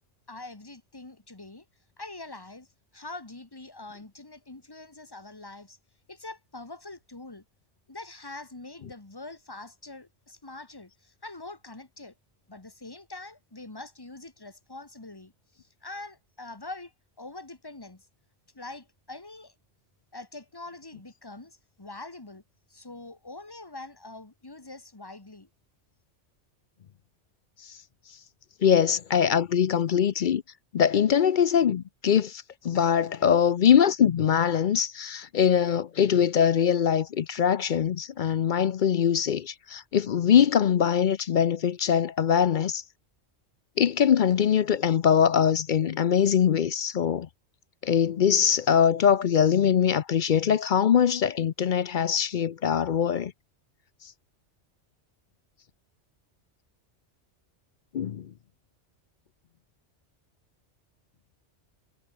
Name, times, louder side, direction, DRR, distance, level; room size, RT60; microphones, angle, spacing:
voice 1, 0.3-1.6 2.0-2.7 2.9-5.8 6.1-7.4 7.9-12.1 12.5-16.9 17.2-18.0 18.5-19.5 20.1-22.4 22.7-25.5, left 2 dB, 20° left, 1.9 m, -44 dB
voice 2, 28.6-30.4 30.7-42.8 43.8-47.3 47.8-53.3 57.9-58.3, left 8 dB, 55° left, 0.6 m, -22 dB
omnidirectional pair, 1.2 m